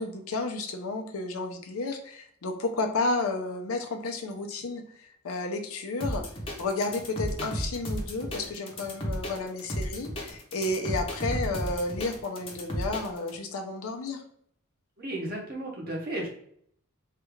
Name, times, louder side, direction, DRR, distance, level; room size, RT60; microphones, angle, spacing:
voice 1, 0.0-6.2 6.6-14.2, left 2 dB, 80° left, 4 dB, 0.5 m, -32 dB
sound 1, 6.0-13.3, equal, 25° left, 0.7 m, -33 dB
voice 2, 15.0-16.3, right 1 dB, 45° right, -1 dB, 0.9 m, -34 dB
3.3 x 2.4 x 3.1 m, 0.66 s
head